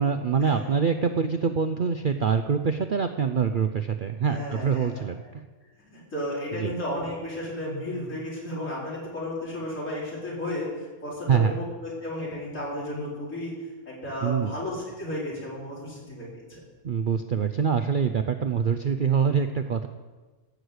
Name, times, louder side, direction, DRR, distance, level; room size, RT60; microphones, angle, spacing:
voice 1, 0.0-5.4 6.6-6.7 11.3-11.5 14.2-14.5 16.8-19.9, right 6 dB, 55° right, 7 dB, 0.6 m, -25 dB
voice 2, 4.3-5.3 5.8-13.5 13.9-16.6, left 1 dB, 65° left, -6 dB, 4.8 m, -33 dB
14.5 x 6.6 x 8.0 m, 1.3 s
omnidirectional pair, 1.5 m